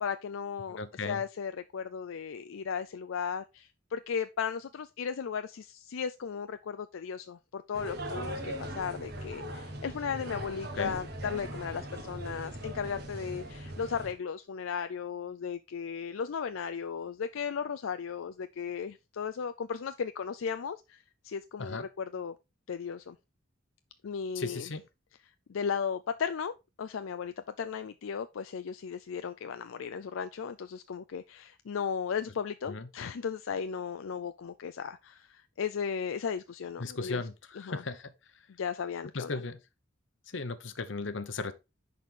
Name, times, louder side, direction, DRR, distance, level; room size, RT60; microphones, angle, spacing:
voice 1, 0.0-0.8 1.1-22.3 22.7-23.2 24.0-24.7 25.5-26.5 26.8-37.2 37.7-37.8 38.6-39.3, left 6 dB, 80° left, 0.4 m, -36 dB
voice 2, 0.7-1.2 10.3-10.4 10.7-11.0 21.6-21.9 24.3-24.8 32.6-32.9 36.8-38.1 39.1-39.6 40.3-41.5, left 3 dB, 65° left, 0.9 m, -36 dB
sound 1, 7.7-14.1, right 1 dB, 55° right, 1.7 m, -40 dB
10.5 x 4.2 x 3.7 m
head